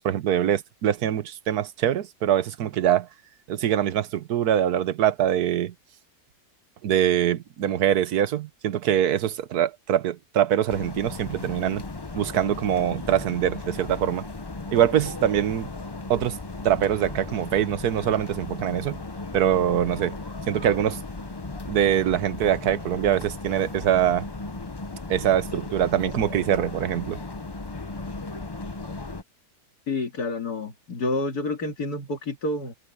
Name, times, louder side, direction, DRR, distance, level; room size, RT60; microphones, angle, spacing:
voice 1, 0.0-3.1 3.5-5.7 6.8-11.8 12.1-14.3 14.7-15.7 16.1-16.4 16.6-19.0 19.3-20.2 20.5-21.0 21.7-24.3 25.1-27.2, right 10 dB, 70° right, 1.4 m, -23 dB
sound 1, 10.7-29.2, left 3 dB, 25° left, 0.5 m, -36 dB
voice 2, 29.9-32.7, left 2 dB, 65° left, 3.0 m, -29 dB
omnidirectional pair, 1.8 m